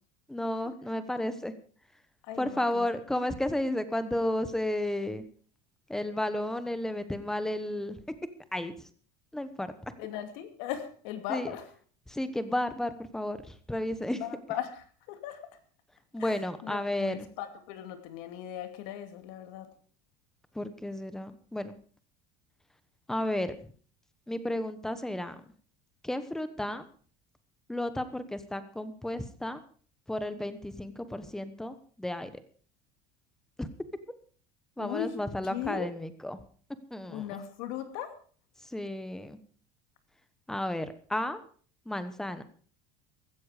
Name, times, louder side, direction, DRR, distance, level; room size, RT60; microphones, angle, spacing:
voice 1, 0.3-1.5 2.4-5.2 5.9-8.0 8.5-8.7 9.3-9.7 11.3-11.6 12.1-14.2 16.1-17.3 20.5-21.7 23.1-23.6 24.3-25.3 26.0-26.8 27.7-29.6 30.1-32.3 33.6-33.7 34.8-36.4 36.9-37.4 38.6-39.4 40.5-41.4 41.9-42.4, left 1 dB, 5° left, 12 dB, 1.1 m, -32 dB
voice 2, 2.2-2.9 10.0-11.6 14.2-15.4 16.2-19.7 34.8-35.2 35.4-35.9 37.1-38.1, left 11 dB, 70° left, 8 dB, 2.6 m, -38 dB
16.0 x 13.5 x 5.0 m, 0.43 s
cardioid pair, 160°, 14 cm